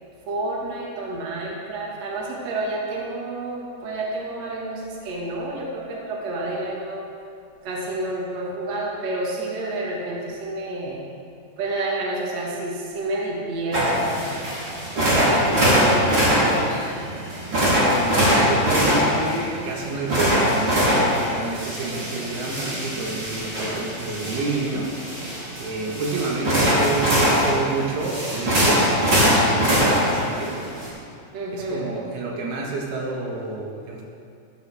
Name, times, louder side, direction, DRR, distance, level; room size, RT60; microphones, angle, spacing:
voice 1, 0.3-7.0 7.6-11.0 11.6-14.5 14.9-17.0 26.5-26.6 31.3-31.9, right 2 dB, 50° right, -3 dB, 2.7 m, -29 dB
sound 1, 13.7-30.9, equal, 30° right, 3.6 m, -22 dB
voice 2, 17.8-24.9 25.3-30.6 31.5-34.0, right 3 dB, 85° right, -2 dB, 3.5 m, -29 dB
13.5 x 12.5 x 3.5 m, 2.4 s
omnidirectional pair, 4.4 m